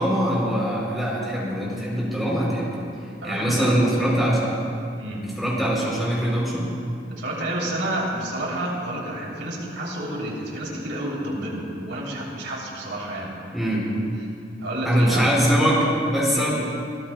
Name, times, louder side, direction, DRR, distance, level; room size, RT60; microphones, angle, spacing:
voice 1, 0.0-2.7 3.2-4.4 5.4-6.7 13.5-13.9 14.8-16.5, equal, ahead, -6 dB, 4.0 m, -22 dB
voice 2, 3.2-4.0 5.0-5.3 7.1-13.4 14.6-15.3 16.3-16.5, right 1 dB, 80° right, -4 dB, 3.7 m, -29 dB
22.0 x 16.5 x 2.4 m, 2.5 s
head